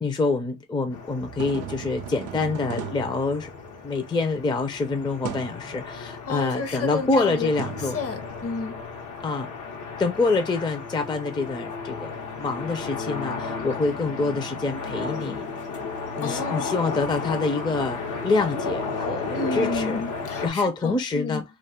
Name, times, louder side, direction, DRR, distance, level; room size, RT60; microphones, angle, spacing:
voice 1, 0.0-3.5 3.8-8.0 9.2-9.5 10.0-15.4 16.2-20.0 20.4-21.4, left 3 dB, 15° left, 0.4 m, -26 dB
sound 1, 0.9-20.5, left 4 dB, 85° left, 0.9 m, -34 dB
sound 2, 1.2-4.0 5.2-5.7 7.6-8.7, right 9 dB, 85° right, 0.5 m, -37 dB
voice 2, 6.2-7.5 7.9-8.8 16.2-16.7 19.3-21.4, left 4 dB, 50° left, 0.7 m, -31 dB
2.4 x 2.3 x 3.5 m
cardioid pair, 90°, 30 cm